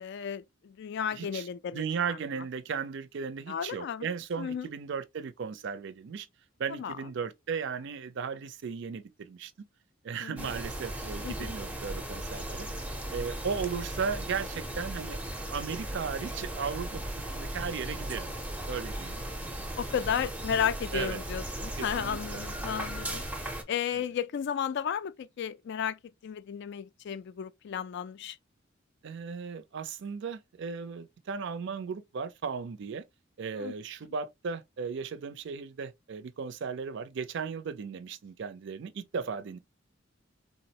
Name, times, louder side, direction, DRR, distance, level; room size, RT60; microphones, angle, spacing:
voice 1, 0.0-2.2 3.5-4.1 4.4-4.7 6.7-7.0 10.2-10.5 11.2-11.5 19.8-23.2 23.7-28.4 33.5-33.7, left 8 dB, 60° left, 0.3 m, -33 dB
voice 2, 1.1-1.5 1.7-6.3 6.6-9.5 10.0-12.7 13.1-15.2 15.5-18.3 18.7-19.2 20.9-21.2 21.8-22.4 23.9-24.0 29.0-33.0 33.4-39.6, right 6 dB, 60° right, 0.4 m, -36 dB
sound 1, 10.4-23.6, right 1 dB, 5° right, 0.5 m, -37 dB
3.7 x 2.0 x 2.7 m
head